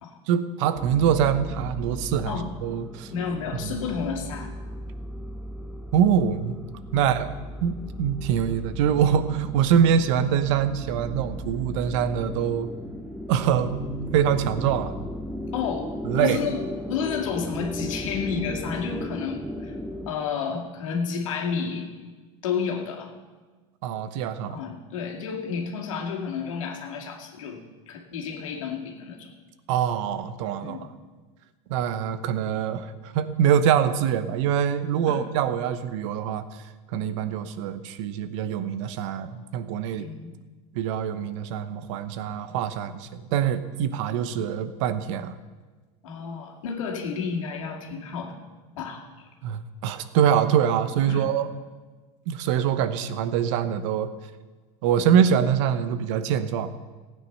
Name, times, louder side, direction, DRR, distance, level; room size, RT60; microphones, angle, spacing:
voice 1, 0.3-3.1 3.6-3.7 5.9-6.6 6.9-7.3 7.6-12.7 13.3-14.9 16.0-16.4 23.8-24.6 29.7-30.9 31.7-36.5 36.9-40.1 40.7-45.3 49.4-51.5 52.3-54.1 54.8-56.7, right 8 dB, 70° right, 12 dB, 1.0 m, -24 dB
sound 1, 0.7-20.1, left 1 dB, ahead, 0.9 m, -36 dB
voice 2, 3.1-4.5 6.9-7.0 15.5-19.7 20.1-21.9 22.4-23.1 24.5-27.6 27.9-29.3 30.6-30.9 35.1-35.2 40.0-40.3 44.3-44.4 46.0-48.4 48.8-49.3 51.1-51.3, left 6 dB, 90° left, 1 dB, 2.2 m, -31 dB
15.5 x 9.0 x 5.5 m, 1.3 s
supercardioid pair, 120°, 16 cm